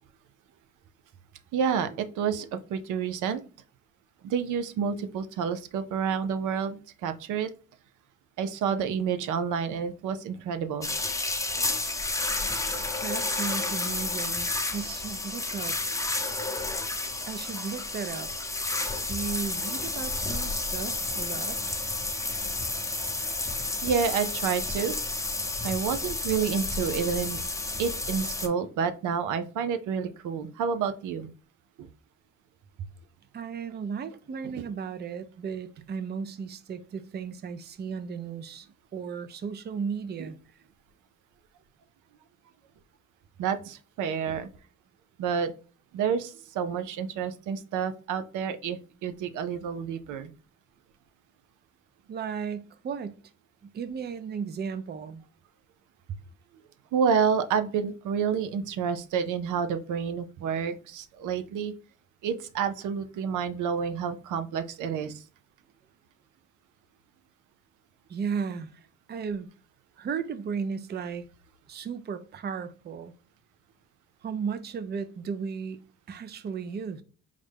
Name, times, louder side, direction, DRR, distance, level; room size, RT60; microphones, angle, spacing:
voice 1, 1.5-3.4 4.2-7.5 8.4-10.9 23.8-24.9 25.6-27.4 27.8-31.3 31.8-31.9 34.4-34.7 43.4-44.5 45.2-45.5 45.9-50.3 56.9-61.7 62.2-65.2, right 7 dB, 80° right, 0.6 m, -29 dB
sound 1, 10.8-28.5, left 2 dB, 10° left, 0.7 m, -31 dB
voice 2, 13.0-15.8 17.3-18.3 19.0-21.6 33.3-38.7 38.9-40.4 52.1-53.2 53.6-55.2 68.1-69.5 70.0-71.2 71.7-73.1 74.2-75.8 76.1-77.0, right 6 dB, 35° right, 0.5 m, -35 dB
5.0 x 2.1 x 3.3 m
cardioid pair, 90°, 30 cm